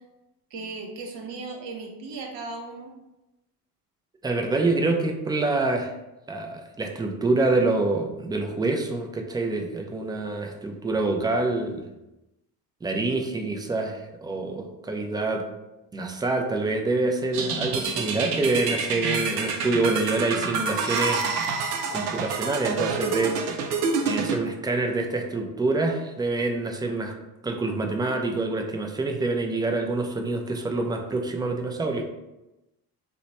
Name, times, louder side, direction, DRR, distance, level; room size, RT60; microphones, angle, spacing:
voice 1, 0.5-2.9, right 3 dB, 60° right, 2 dB, 0.9 m, -36 dB
voice 2, 4.2-5.9 6.3-11.8 12.8-15.4 15.9-21.3 21.9-23.4 24.0-27.1 27.4-32.1, right 3 dB, 10° right, 3 dB, 0.4 m, -26 dB
sound 1, 17.3-24.4, right 4 dB, 85° right, 0.5 m, -27 dB
3.0 x 2.1 x 4.0 m, 0.97 s
hypercardioid pair, 60°, 46 cm